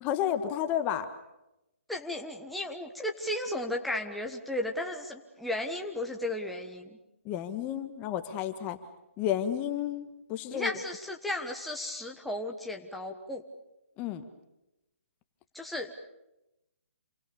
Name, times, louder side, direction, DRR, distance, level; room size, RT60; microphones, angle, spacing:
voice 1, 0.0-1.1 7.2-8.8 9.2-10.7 14.0-14.2, left 10 dB, 20° left, 9 dB, 1.3 m, -31 dB
voice 2, 1.9-7.0 10.5-13.4 15.5-16.0, left 1 dB, ahead, 1 dB, 1.3 m, -34 dB
28.5 x 23.5 x 7.1 m, 0.93 s
hypercardioid pair, 150°, 7 cm